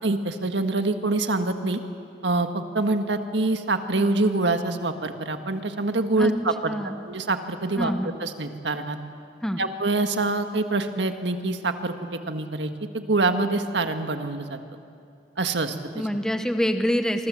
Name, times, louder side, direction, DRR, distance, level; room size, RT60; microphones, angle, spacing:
voice 1, 0.0-1.8 2.2-6.7 7.1-7.9 8.2-9.0 9.6-11.9 12.3-14.6 15.4-15.8, right 2 dB, 80° right, 7 dB, 1.7 m, -25 dB
voice 2, 6.7-7.1 7.8-8.1 9.4-9.6 15.9-17.3, equal, 5° left, 6 dB, 0.9 m, -26 dB
27.0 x 24.0 x 7.6 m, 2.5 s
head